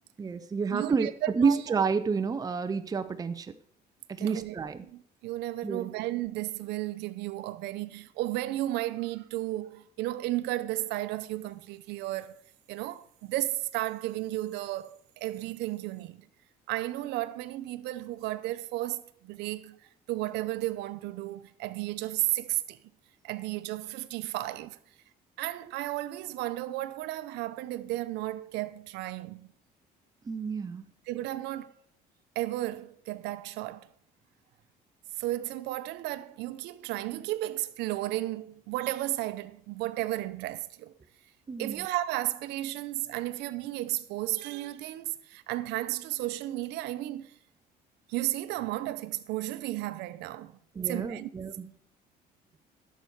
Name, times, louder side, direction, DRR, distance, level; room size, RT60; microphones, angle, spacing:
voice 1, 0.2-3.5 4.1-4.9 5.6-5.9 30.3-30.8 41.5-41.8 50.7-51.7, right 5 dB, 20° right, 0.6 m, -29 dB
voice 2, 0.7-1.6 4.2-4.5 4.8-12.4 12.7-16.3 16.7-19.8 20.1-22.8 23.2-24.8 25.4-29.5 31.1-31.7 32.4-33.9 35.2-40.9 41.6-47.3 48.1-50.6 50.8-51.3, right 16 dB, 90° right, 0.6 m, -33 dB
11.5 x 6.9 x 4.6 m
cardioid pair, 110°, 17 cm